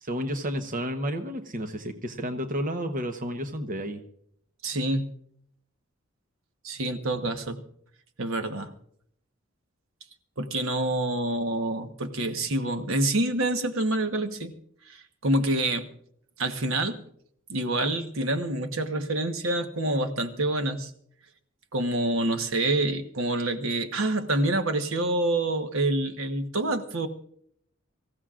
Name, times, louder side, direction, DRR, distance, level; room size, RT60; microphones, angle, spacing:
voice 1, 0.0-4.0, equal, 45° right, 6 dB, 1.1 m, -31 dB
voice 2, 4.6-5.1 6.6-7.6 8.2-8.7 10.4-14.5 14.9-15.9 16.4-17.0 17.5-20.9 21.7-27.1, right 1 dB, 75° right, 7 dB, 1.2 m, -27 dB
24.5 x 15.5 x 2.5 m, 0.66 s
head